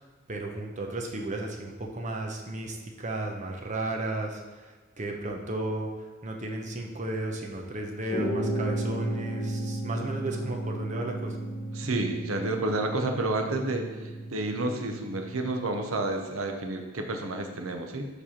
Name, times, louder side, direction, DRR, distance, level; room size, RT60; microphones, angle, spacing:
voice 1, 0.3-11.4, right 2 dB, 35° right, 1 dB, 0.8 m, -34 dB
sound 1, 8.1-15.8, right 1 dB, 45° left, 1.7 m, -34 dB
voice 2, 11.8-13.9 14.3-18.1, right 2 dB, 85° right, 4 dB, 0.9 m, -30 dB
7.5 x 3.4 x 5.7 m, 1.3 s
head